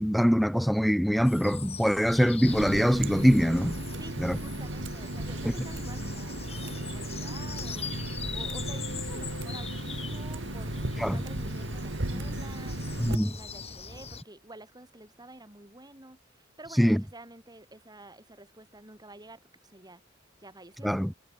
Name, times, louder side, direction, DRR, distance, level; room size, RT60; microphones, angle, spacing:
voice 1, 0.0-3.8 4.2-4.4 11.0-11.2 13.0-13.3 16.8-17.0 20.8-21.1, equal, ahead, 0.4 m, -23 dB
sound 1, 1.2-14.2, left 5 dB, 35° left, 5.6 m, -42 dB
Water tap faucet, 2.5-13.2, right 1 dB, 70° right, 2.8 m, -35 dB
voice 2, 4.0-20.0 20.4-20.9, right 2 dB, 20° right, 5.6 m, -49 dB
sound 2, 5.6-10.3, left 2 dB, 80° left, 5.3 m, -50 dB
head